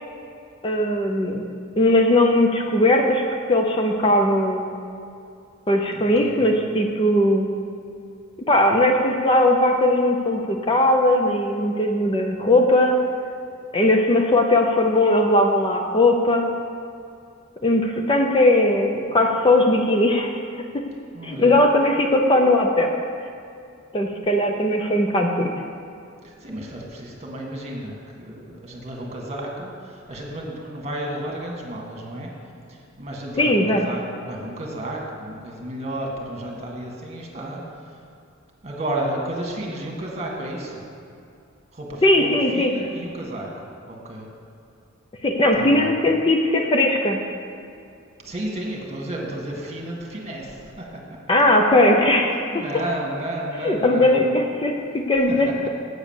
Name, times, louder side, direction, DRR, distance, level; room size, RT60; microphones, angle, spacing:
voice 1, 0.6-1.4 1.8-4.7 5.7-7.5 8.5-13.0 13.7-16.5 17.6-20.3 20.7-20.8 21.2-23.0 23.9-25.5 33.4-33.8 42.0-42.7 45.2-47.2 51.3-52.6 53.6-55.7, left 1 dB, 25° left, 3 dB, 0.6 m, -19 dB
voice 2, 5.9-6.4 21.1-21.5 26.2-32.3 32.7-37.9 38.6-40.8 41.7-43.5 43.9-44.3 45.5-45.9 48.2-51.2 52.5-54.2 55.5-55.7, right 1 dB, 30° right, -1 dB, 1.7 m, -32 dB
8.1 x 7.2 x 7.2 m, 2.5 s
head